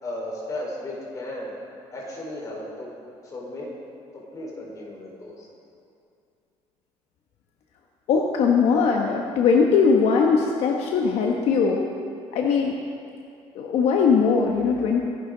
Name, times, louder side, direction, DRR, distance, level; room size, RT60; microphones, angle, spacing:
voice 1, 0.0-1.5 1.9-2.9 3.2-3.7 4.3-5.5, left 1 dB, 35° left, -3 dB, 4.5 m, -35 dB
voice 2, 8.1-11.9 12.3-12.8 13.5-15.1, left 5 dB, 70° left, 1 dB, 1.2 m, -20 dB
24.0 x 11.5 x 3.9 m, 2.6 s
cardioid pair, 145°, 11 cm